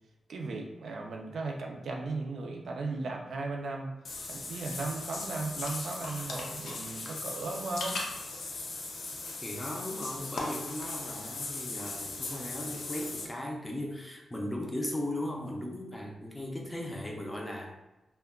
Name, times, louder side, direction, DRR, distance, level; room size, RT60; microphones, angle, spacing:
voice 1, 0.3-3.9 4.3-8.1, right 3 dB, 70° right, 1 dB, 0.4 m, -36 dB
Water / Bathtub (filling or washing), 4.0-13.2, left 3 dB, 85° left, 0.5 m, -38 dB
voice 2, 9.4-17.7, left 1 dB, 10° left, -1 dB, 0.4 m, -37 dB
2.2 x 2.2 x 3.5 m, 1.0 s
wide cardioid pair, 145°, 0 cm